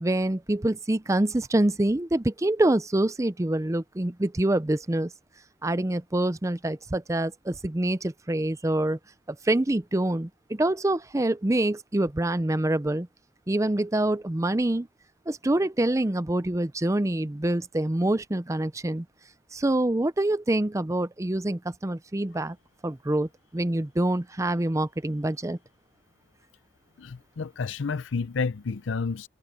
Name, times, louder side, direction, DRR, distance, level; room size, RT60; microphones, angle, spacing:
voice 1, 0.0-5.1 5.6-9.0 9.3-13.1 13.5-14.9 15.3-19.0 19.5-22.6 22.8-25.6, right 1 dB, 15° right, 0.5 m, -26 dB
voice 2, 27.0-29.3, left 4 dB, 75° left, 0.5 m, -30 dB
head